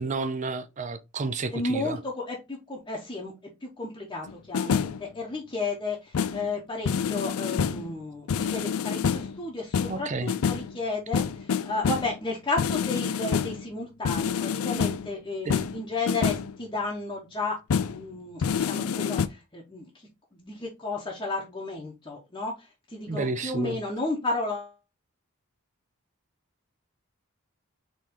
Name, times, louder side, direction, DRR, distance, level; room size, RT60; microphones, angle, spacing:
voice 1, 0.0-2.0 9.9-10.3 15.5-15.6 23.1-23.8, right 3 dB, 35° right, 0.4 m, -31 dB
voice 2, 1.5-3.3 3.6-17.6 17.9-24.7, left 2 dB, 20° left, 0.9 m, -33 dB
sound 1, 4.3-5.0 6.1-6.5 6.9-7.9 8.3-9.4 9.7-10.8 11.1-12.2 12.6-13.7 14.0-15.1 15.5-16.5 17.7-18.0 18.4-19.3, left 6 dB, 80° left, 0.4 m, -27 dB
4.3 x 3.1 x 3.6 m
head